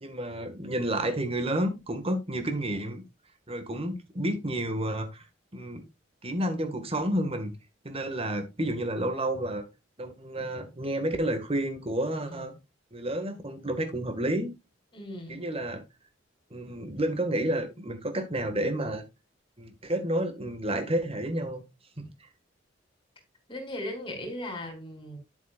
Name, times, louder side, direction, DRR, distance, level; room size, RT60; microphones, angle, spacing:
voice 1, 0.0-3.0 3.5-5.3 5.5-5.8 6.2-7.5 7.8-9.6 10.0-12.5 12.9-14.5 15.3-15.8 16.5-19.0 19.6-21.6 22.2-22.3, right 1 dB, 30° right, 1.9 m, -30 dB
voice 2, 14.9-15.4 23.5-25.2, left 1 dB, 25° left, 3.8 m, -37 dB
10.0 x 8.0 x 2.5 m
head